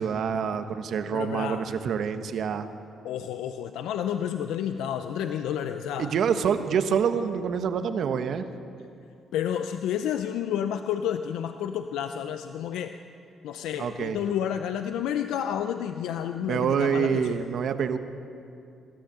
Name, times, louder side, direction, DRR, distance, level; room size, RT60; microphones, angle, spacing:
voice 1, 0.0-2.7 6.0-8.5 13.8-14.2 16.5-18.0, right 7 dB, 65° right, 8 dB, 1.3 m, -26 dB
voice 2, 1.1-1.6 3.0-6.1 9.3-12.9 13.4-17.4, left 9 dB, 90° left, 8 dB, 0.6 m, -30 dB
23.5 x 13.0 x 8.7 m, 2.5 s
cardioid pair, 90°, 0 cm